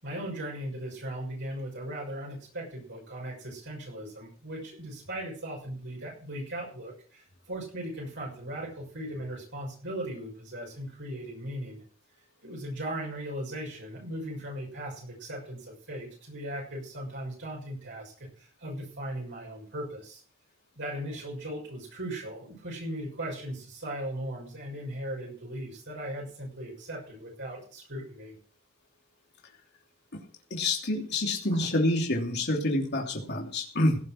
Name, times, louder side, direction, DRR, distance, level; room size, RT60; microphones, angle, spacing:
voice 1, 0.0-11.8 12.4-20.2 20.7-28.3 31.5-31.7, right 1 dB, 60° right, -2 dB, 6.3 m, -38 dB
voice 2, 30.5-34.0, left 1 dB, 50° left, 0 dB, 3.0 m, -27 dB
17.0 x 7.6 x 6.4 m, 0.43 s
head